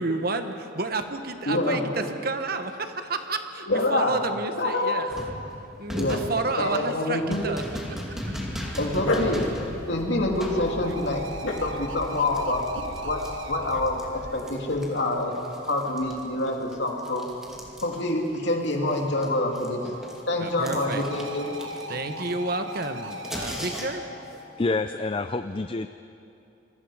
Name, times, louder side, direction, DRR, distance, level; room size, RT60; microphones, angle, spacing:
voice 1, 0.0-5.1 5.6-8.8 14.4-14.5 20.4-21.0 21.9-24.3, right 3 dB, 50° right, 7 dB, 1.2 m, -31 dB
voice 2, 1.5-1.9 3.7-4.2 4.6-5.3 6.0-6.2 6.6-7.5 8.8-9.5 9.9-11.2 11.6-12.6 13.0-15.4 15.7-17.3 17.8-19.9 20.3-21.6, left 2 dB, 60° left, 1 dB, 2.8 m, -26 dB
sound 1, 5.1-14.1 14.4-18.4 18.6-24.2, equal, ahead, 2.5 m, -38 dB
Dog, 8.5-14.4, left 1 dB, 85° left, 2.7 m, -34 dB
sound 2, 9.5-15.6 19.1-25.1, equal, 75° right, 1.4 m, -40 dB
voice 3, 24.6-25.9, left 3 dB, 25° left, 10 dB, 0.4 m, -27 dB
27.5 x 22.0 x 5.0 m, 2.7 s
head